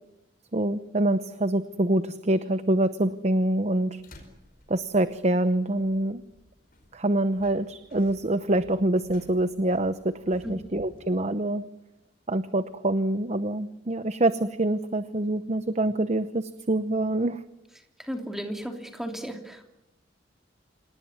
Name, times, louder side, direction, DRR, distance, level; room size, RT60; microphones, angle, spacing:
voice 1, 0.5-4.0 4.7-6.2 6.9-11.6 12.3-17.4, right 1 dB, 35° right, 12 dB, 0.8 m, -25 dB
sound 1, 3.4-11.1, left 1 dB, 50° left, 5.1 m, -55 dB
voice 2, 17.8-19.7, equal, ahead, 4 dB, 3.0 m, -35 dB
27.0 x 18.5 x 9.5 m, 0.88 s
head